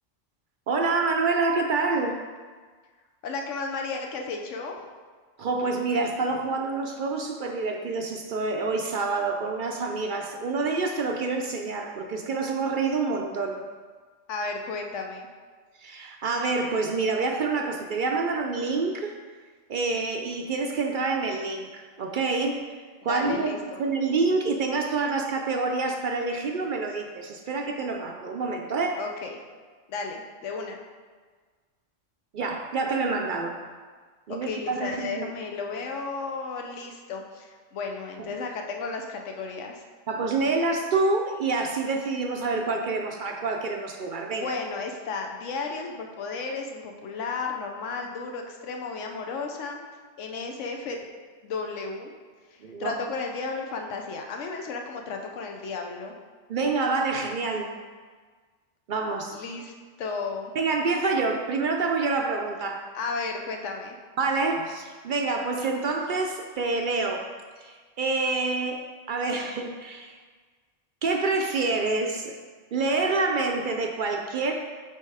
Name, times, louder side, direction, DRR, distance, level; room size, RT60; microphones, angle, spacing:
voice 1, 0.7-2.2 5.4-13.6 15.8-19.1 19.7-22.6 23.0-29.0 32.3-33.6 34.3-35.3 40.1-44.5 52.6-53.0 56.5-57.7 58.9-59.4 60.6-62.8 64.2-67.3 67.6-70.2 71.0-72.3 72.7-74.5, right 3 dB, 60° right, 3 dB, 0.5 m, -27 dB
voice 2, 3.2-4.8 14.3-15.3 23.1-23.8 28.9-29.4 29.9-30.8 34.3-39.8 44.3-49.8 50.2-51.0 51.4-52.1 52.5-56.1 59.3-59.7 60.0-60.5 62.9-64.0, left 4 dB, 85° left, 3 dB, 1.0 m, -33 dB
7.9 x 3.0 x 4.7 m, 1.5 s
omnidirectional pair, 1.2 m